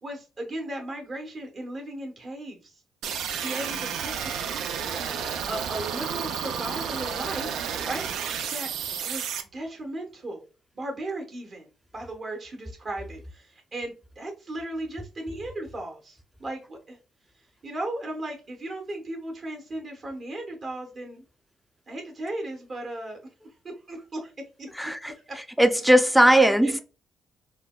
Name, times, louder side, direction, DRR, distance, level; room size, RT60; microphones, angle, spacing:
voice 1, 0.0-2.8 3.4-4.9 5.5-8.7 9.0-10.4 10.7-17.0 17.6-21.2 21.9-24.3 24.6-24.7 25.1-25.4 26.6-26.8, right 1 dB, 45° right, 0.8 m, -36 dB
sound 1, 3.0-9.4, right 7 dB, 85° right, 0.3 m, -31 dB
voice 2, 24.8-25.1 25.6-26.8, right 1 dB, ahead, 0.4 m, -18 dB
3.9 x 2.2 x 2.2 m
cardioid pair, 90°, 0 cm